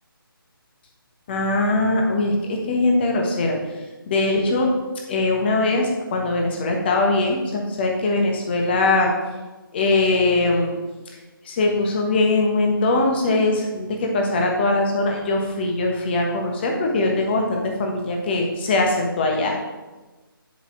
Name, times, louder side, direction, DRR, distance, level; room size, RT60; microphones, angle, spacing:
voice 1, 1.3-3.6 4.1-4.7 5.1-9.1 9.7-10.7 11.4-19.5, left 2 dB, 25° left, 1 dB, 1.1 m, -21 dB
7.4 x 4.1 x 4.8 m, 1.2 s
figure-of-eight pair, 155°, 12 cm